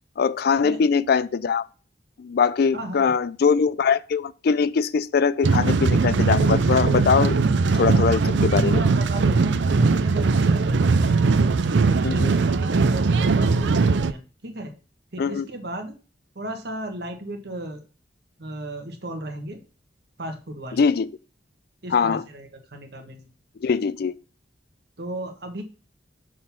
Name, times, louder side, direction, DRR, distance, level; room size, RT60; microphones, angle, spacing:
voice 1, 0.2-1.6 2.2-7.4 7.7-8.8 12.0-12.3 15.2-15.5 20.7-21.1 21.9-22.2 23.6-24.1, left 5 dB, 60° left, 0.4 m, -22 dB
voice 2, 2.7-3.1 8.2-11.1 11.6-14.7 15.1-15.9 16.3-17.8 18.4-19.6 20.2-20.8 21.8-23.3 25.0-25.6, right 1 dB, 65° right, 1.4 m, -35 dB
sound 1, 5.4-14.1, right 4 dB, 80° right, 0.5 m, -20 dB
6.6 x 3.8 x 5.8 m
head